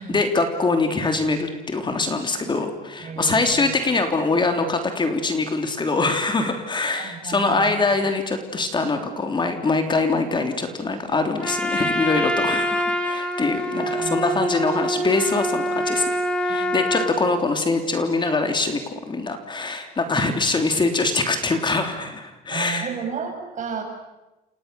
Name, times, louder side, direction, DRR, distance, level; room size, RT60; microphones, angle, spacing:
voice 1, 0.0-16.1 16.4-18.8 19.1-22.9, left 3 dB, 25° left, 6 dB, 3.2 m, -23 dB
voice 2, 3.0-3.8 7.0-7.9 10.1-10.2 13.8-14.7 16.5-17.2 22.5-23.8, right 6 dB, 50° right, 2 dB, 7.9 m, -34 dB
Trumpet, 11.4-17.2, equal, 5° left, 3.9 m, -25 dB
29.5 x 28.5 x 7.0 m, 1.1 s
cardioid pair, 110°, 17 cm